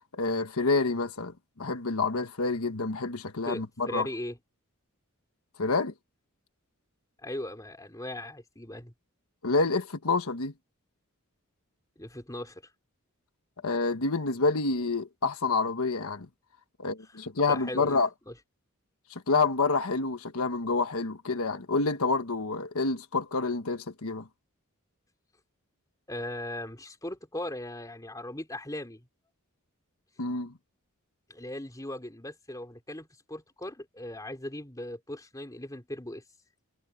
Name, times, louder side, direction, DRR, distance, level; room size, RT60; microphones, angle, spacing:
voice 1, 0.1-4.1 5.6-5.9 9.4-10.5 13.6-16.3 16.8-18.1 19.1-24.3 30.2-30.5, left 3 dB, 85° left, 1.3 m, -28 dB
voice 2, 3.5-4.4 7.2-8.9 12.0-12.6 17.5-18.0 18.3-18.4 26.1-29.1 31.3-36.2, left 1 dB, 15° left, 3.7 m, -38 dB
head